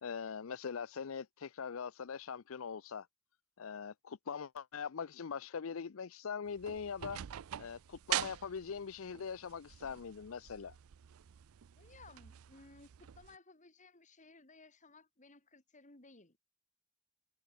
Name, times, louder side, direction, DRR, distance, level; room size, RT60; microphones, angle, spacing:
voice 1, 0.0-3.1 3.6-7.2 7.6-10.7, left 6 dB, 65° left, 0.5 m, -42 dB
sound 1, 6.5-13.3, right 12 dB, 75° right, 0.4 m, -44 dB
voice 2, 11.8-16.4, left 3 dB, 35° left, 2.7 m, -59 dB
head